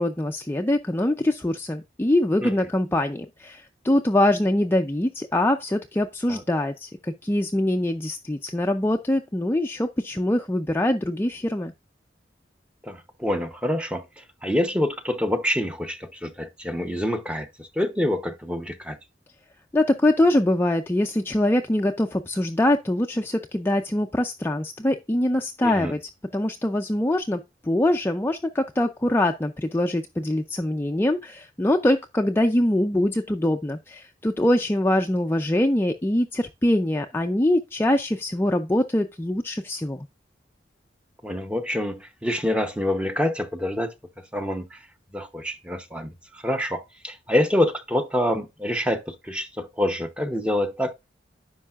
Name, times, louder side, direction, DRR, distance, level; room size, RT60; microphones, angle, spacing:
voice 1, 0.0-11.7 19.7-26.0 26.3-40.1, left 1 dB, 15° left, 0.4 m, -23 dB
voice 2, 12.8-19.0 25.6-25.9 41.2-43.9 44.3-44.8 45.1-50.9, left 1 dB, 5° right, 0.8 m, -26 dB
10.0 x 5.7 x 2.4 m
head